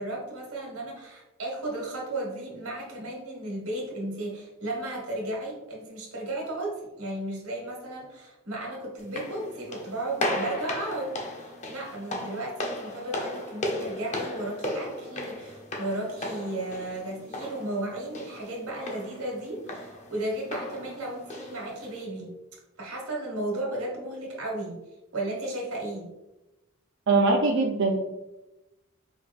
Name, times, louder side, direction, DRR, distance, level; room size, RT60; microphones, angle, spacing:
voice 1, 0.0-22.3 22.8-24.8 25.1-26.1, right 1 dB, 80° right, -2 dB, 1.3 m, -34 dB
sound 1, 9.0-22.0, left 1 dB, 30° left, 0.5 m, -36 dB
voice 2, 27.1-28.0, right 3 dB, 55° right, 0 dB, 0.4 m, -22 dB
4.9 x 2.3 x 3.4 m, 0.98 s
head